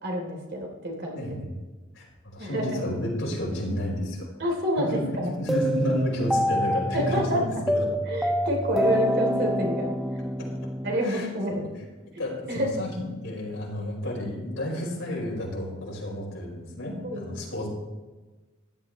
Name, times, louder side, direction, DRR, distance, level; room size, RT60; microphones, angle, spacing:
voice 1, 0.0-1.3 2.4-2.8 4.4-5.3 6.9-7.4 8.1-9.9 10.8-11.6 12.5-12.7 17.0-17.3, equal, 55° right, 1 dB, 3.2 m, -28 dB
voice 2, 1.2-1.6 1.9-4.3 4.7-5.0 5.3-7.9 10.4-10.5 11.0-11.7 12.2-17.7, left 1 dB, 70° left, -3 dB, 4.9 m, -31 dB
sound 1, 5.5-11.7, equal, ahead, 0.5 m, -27 dB
16.0 x 12.0 x 3.1 m, 1.2 s
head